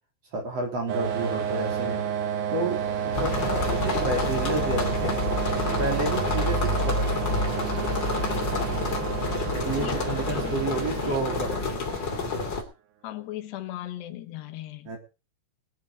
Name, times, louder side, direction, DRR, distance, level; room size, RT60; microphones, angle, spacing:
voice 1, 0.3-2.0 2.5-2.9 3.2-5.2 5.6-7.4 9.5-11.8 14.9-15.0, right 2 dB, 40° right, 2 dB, 4.3 m, -30 dB
sound 1, 0.9-12.3, right 9 dB, 80° right, 2.9 m, -31 dB
sound 2, 1.0-12.1, right 2 dB, 60° right, 8.6 m, -44 dB
sound 3, 3.1-12.6, left 2 dB, 30° left, 2.8 m, -28 dB
voice 2, 9.7-11.2 13.0-14.9, left 13 dB, 80° left, 6 dB, 3.3 m, -38 dB
20.0 x 9.0 x 5.1 m, 0.32 s
omnidirectional pair, 4.8 m